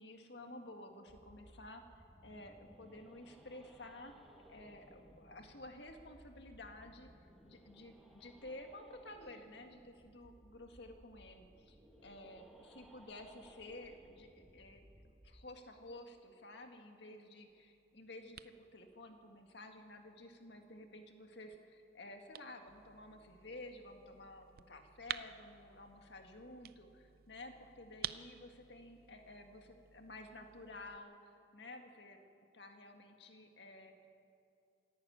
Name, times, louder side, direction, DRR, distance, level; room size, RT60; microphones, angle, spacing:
voice 1, 0.0-1.8 2.2-4.1 4.5-7.1 7.4-11.8 12.0-32.2 32.5-33.9, left 2 dB, 65° left, 4 dB, 1.9 m, -52 dB
sound 1, 1.1-15.4, equal, ahead, 1.4 m, -62 dB
sound 2, 17.5-31.0, right 10 dB, 50° right, 0.5 m, -52 dB
26.0 x 11.5 x 8.9 m, 2.7 s
head